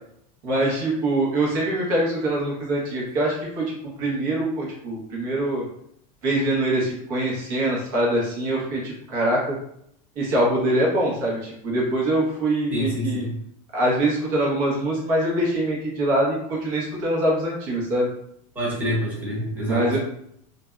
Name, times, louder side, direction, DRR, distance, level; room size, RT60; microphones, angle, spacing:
voice 1, 0.4-5.6 6.2-9.6 10.2-13.3 13.7-18.1 19.7-20.0, right 1 dB, 65° right, -4 dB, 1.0 m, -24 dB
voice 2, 12.7-13.4 18.5-19.9, equal, 10° right, -7 dB, 0.9 m, -27 dB
2.6 x 2.1 x 2.4 m, 0.72 s
supercardioid pair, 145°, 18 cm